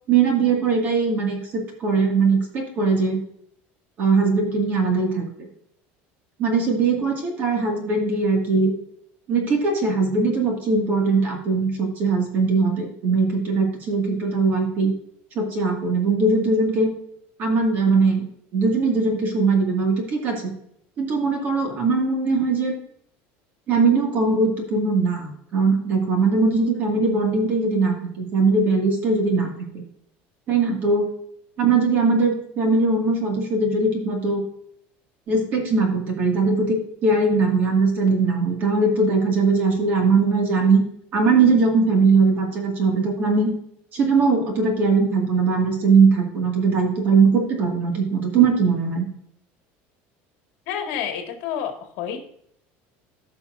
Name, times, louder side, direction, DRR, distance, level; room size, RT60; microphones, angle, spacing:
voice 1, 0.1-3.2 4.0-5.5 6.4-8.7 9.3-14.9 15.4-16.9 17.4-18.3 18.5-20.5 21.0-22.7 23.7-29.8 30.5-31.1 31.6-34.4 35.3-40.8 41.1-43.5 43.9-49.1, right 4 dB, 35° right, 2 dB, 2.1 m, -20 dB
voice 2, 50.7-52.2, left 8 dB, 60° left, 3 dB, 1.9 m, -29 dB
15.0 x 5.8 x 2.6 m, 0.70 s
cardioid pair, 180°, 5 cm